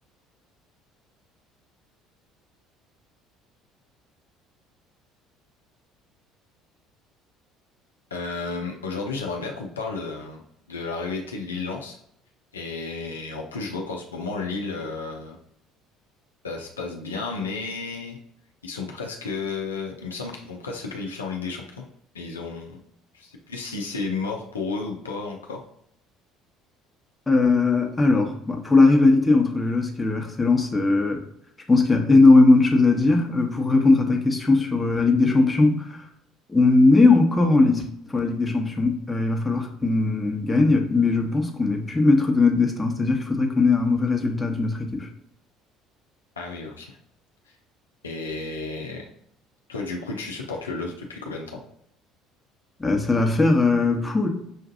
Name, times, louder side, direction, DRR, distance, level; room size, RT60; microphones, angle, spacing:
voice 1, 8.1-10.4 10.7-12.0 12.5-15.4 16.4-18.2 18.6-21.8 22.1-22.8 23.1-25.6 46.4-47.0 48.0-49.1 49.7-51.6, left 4 dB, 90° left, 0 dB, 0.5 m, -32 dB
voice 2, 27.3-31.2 31.7-36.0 36.5-37.8 38.1-45.1 52.8-54.3, left 3 dB, 15° left, 2 dB, 1.0 m, -19 dB
6.1 x 2.5 x 2.6 m, 0.71 s
hypercardioid pair, 60°, 0 cm